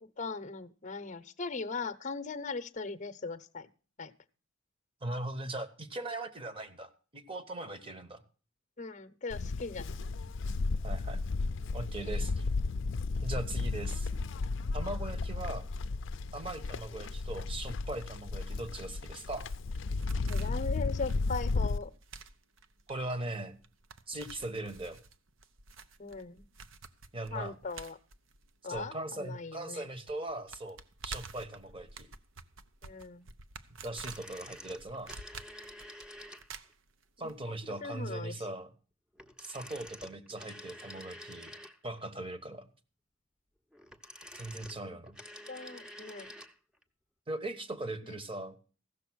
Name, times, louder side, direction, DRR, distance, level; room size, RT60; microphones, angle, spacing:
voice 1, 0.0-3.7 4.0-4.1 8.8-10.0 16.9-17.1 20.3-21.9 26.0-26.5 27.3-28.0 28.6-29.9 32.8-33.3 37.8-38.4 44.8-45.0 45.5-46.3 48.0-48.2, left 4 dB, 40° left, 13 dB, 0.8 m, -39 dB
voice 2, 5.0-8.2 10.8-11.2 11.7-12.4 13.2-14.1 14.7-15.7 16.3-19.5 22.9-23.6 24.1-25.0 27.1-27.6 28.7-32.1 33.8-35.1 37.2-38.7 39.4-41.5 41.8-42.7 44.3-45.2 47.3-48.6, right 2 dB, 30° right, 9 dB, 1.2 m, -39 dB
Livestock farm animals working animals, 9.3-21.8, left 3 dB, 65° left, 0.5 m, -34 dB
sound 1, 19.3-29.4 29.6-29.7 30.1-37.3 37.6-37.7, right 4 dB, 75° right, 0.8 m, -49 dB
sound 2, 33.9-36.7 39.1-42.1 43.7-46.6 46.8-46.9, left 1 dB, 5° right, 0.8 m, -49 dB
15.5 x 6.6 x 6.2 m, 0.38 s
head